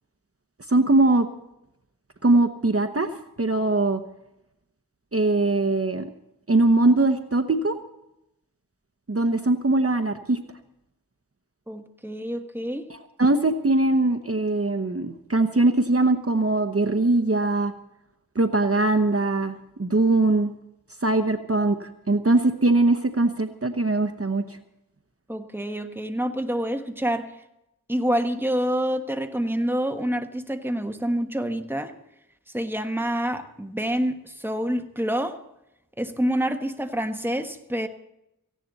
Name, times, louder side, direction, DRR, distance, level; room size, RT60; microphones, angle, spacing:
voice 1, 0.7-1.3 2.2-4.0 5.1-6.1 6.5-7.8 9.1-10.4 12.9-17.7 18.3-20.5 21.0-24.4, right 2 dB, 40° right, 6 dB, 1.0 m, -21 dB
voice 2, 11.7-12.9 25.3-27.3 27.9-31.9 32.5-35.4 36.0-37.9, equal, 5° right, 6 dB, 1.4 m, -27 dB
18.0 x 16.0 x 4.1 m, 0.85 s
wide cardioid pair, 45°, 35 cm